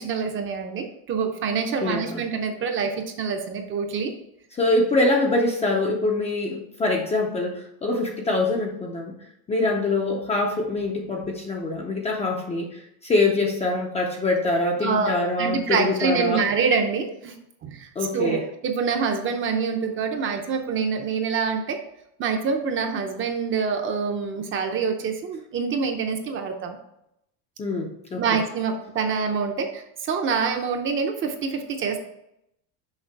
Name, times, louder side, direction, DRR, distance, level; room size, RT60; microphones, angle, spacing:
voice 1, 0.0-4.1 14.8-17.4 17.6-21.8 22.2-26.8 28.2-32.0, right 5 dB, 30° right, 4 dB, 0.6 m, -26 dB
voice 2, 1.8-2.2 4.6-9.1 9.5-16.4 18.0-18.4 27.6-28.2, left 2 dB, 15° left, 0 dB, 0.5 m, -24 dB
6.5 x 4.9 x 4.6 m, 0.80 s
cardioid pair, 165°, 45 cm